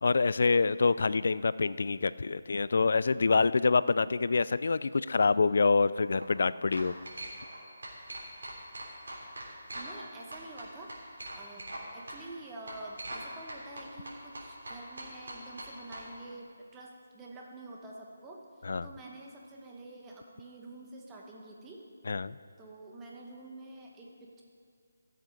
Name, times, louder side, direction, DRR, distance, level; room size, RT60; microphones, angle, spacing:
voice 1, 0.0-7.0 18.6-18.9 22.1-22.4, left 4 dB, 60° left, 16 dB, 0.3 m, -26 dB
sound 1, 6.0-6.3 6.7-7.6 7.8-10.0 10.3-11.8 12.1-12.2 12.7-13.2 13.5-16.0, right 1 dB, 75° right, 3.4 m, -42 dB
voice 2, 9.7-10.9 11.3-11.7 11.9-18.4 18.8-21.8 22.6-24.4, right 2 dB, 10° right, -2 dB, 1.1 m, -47 dB
14.5 x 7.6 x 5.2 m, 2.2 s
figure-of-eight pair, 165°, 0 cm